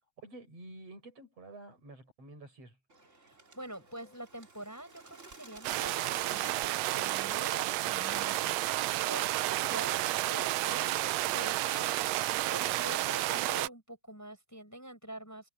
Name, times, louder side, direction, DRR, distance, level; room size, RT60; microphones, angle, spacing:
voice 1, 0.2-2.8, right 2 dB, 55° right, 8.6 m, -50 dB
Bird, 2.9-8.2, right 3 dB, 25° right, 3.0 m, -55 dB
voice 2, 3.2-15.5, right 1 dB, 5° left, 7.0 m, -46 dB
sound 1, 5.6-13.7, right 16 dB, 75° right, 1.6 m, -31 dB
omnidirectional pair, 3.4 m